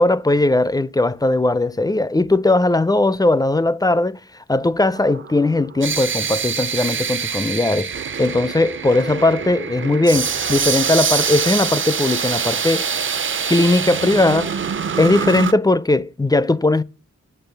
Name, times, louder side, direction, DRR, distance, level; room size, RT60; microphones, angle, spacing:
voice 1, 0.0-4.2 4.5-12.9 13.5-14.5 15.0-16.8, left 2 dB, 15° left, 0.4 m, -18 dB
sound 1, 5.0-15.5, right 6 dB, 40° right, 0.5 m, -24 dB
8.9 x 5.4 x 6.7 m
cardioid pair, 60°, 31 cm